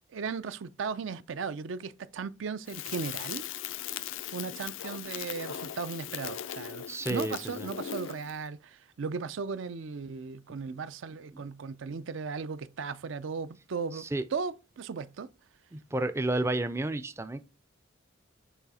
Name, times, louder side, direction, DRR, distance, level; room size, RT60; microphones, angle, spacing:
voice 1, 0.1-3.5 4.3-14.0 14.3-15.3, right 5 dB, 75° right, 0.4 m, -36 dB
Crackle, 2.7-8.4, left 10 dB, 75° left, 0.4 m, -39 dB
voice 2, 6.9-7.7 11.3-11.4 13.9-14.2 15.7-17.4, right 2 dB, 15° right, 0.3 m, -31 dB
7.0 x 3.5 x 4.1 m
head